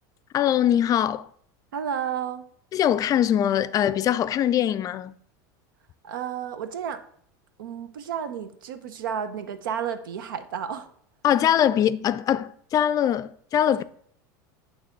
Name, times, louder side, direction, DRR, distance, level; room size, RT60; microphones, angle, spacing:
voice 1, 0.3-1.3 2.7-5.1 11.2-13.8, left 10 dB, 35° left, 0.4 m, -22 dB
voice 2, 1.7-2.4 6.0-7.0 7.6-10.9 13.8-13.9, right 8 dB, 90° right, 0.8 m, -32 dB
8.8 x 3.4 x 6.7 m
supercardioid pair, 115°, 11 cm